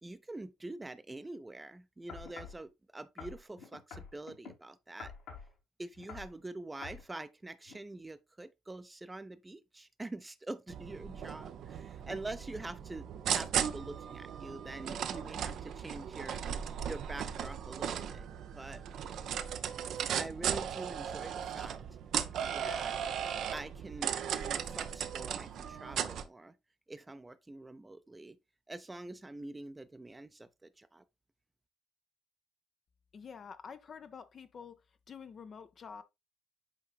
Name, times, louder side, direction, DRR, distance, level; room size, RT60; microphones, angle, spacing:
voice 1, 0.0-5.1 5.8-16.4 16.9-18.3 18.5-18.8 20.2-21.8 22.4-23.0 23.5-26.6 26.9-28.4 28.7-31.0, right 2 dB, 15° right, 0.6 m, -45 dB
sound 1, 2.1-2.6 3.2-4.5 5.0-5.5 5.9-6.3 6.8-7.0 7.7-7.8, left 5 dB, 65° left, 2.1 m, -47 dB
sound 2, 10.7-26.2, right 8 dB, 55° right, 0.5 m, -37 dB
voice 2, 33.1-34.8 35.1-36.0, left 6 dB, 40° left, 0.7 m, -48 dB
8.3 x 4.8 x 2.3 m
figure-of-eight pair, 45°, 0 cm